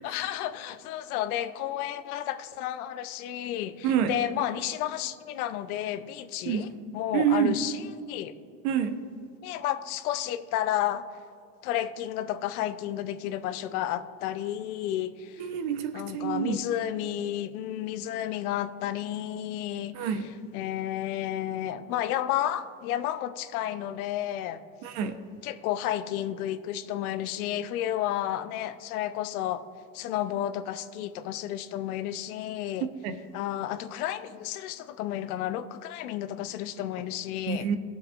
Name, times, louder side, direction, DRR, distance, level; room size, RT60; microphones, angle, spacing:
voice 1, 0.0-8.3 9.4-11.0 11.6-15.5 15.9-20.1 20.5-24.6 25.4-29.6 29.9-32.9 33.3-37.7, left 12 dB, 80° left, 11 dB, 0.7 m, -32 dB
voice 2, 3.8-4.2 6.5-7.6 8.6-9.0 15.4-16.6 19.9-20.3 24.8-25.2 33.0-33.1 37.5-37.8, right 8 dB, 70° right, 9 dB, 1.0 m, -27 dB
18.0 x 7.3 x 2.5 m, 2.4 s
supercardioid pair, 95°, 43 cm